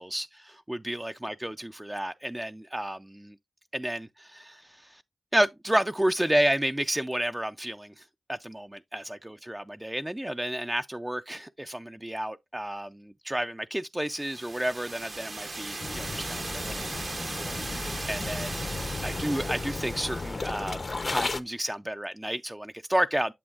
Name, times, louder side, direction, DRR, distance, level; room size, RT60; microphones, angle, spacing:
voice 1, 0.0-3.3 3.7-5.0 5.3-17.0 17.3-18.6 19.0-20.8 21.1-23.3, right 1 dB, 15° right, 0.3 m, -31 dB
sound 1, 14.1-20.6, right 2 dB, 50° right, 0.7 m, -38 dB
sound 2, 15.8-21.4, left 3 dB, 55° left, 0.6 m, -34 dB
8.6 x 6.9 x 2.4 m
cardioid pair, 40°, 0 cm